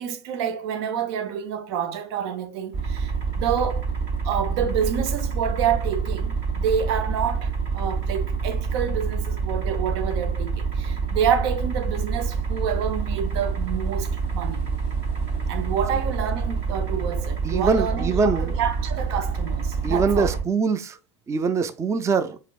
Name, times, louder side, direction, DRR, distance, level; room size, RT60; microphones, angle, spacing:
voice 1, 0.0-3.9 4.2-14.7 15.5-20.4, right 8 dB, 65° right, 0.7 m, -28 dB
sound 1, 2.7-20.4, right 5 dB, 50° right, 2.0 m, -27 dB
voice 2, 17.4-18.5 19.8-21.0 21.3-22.4, right 4 dB, 20° right, 0.4 m, -23 dB
4.9 x 2.8 x 2.3 m
hypercardioid pair, 100°, 14 cm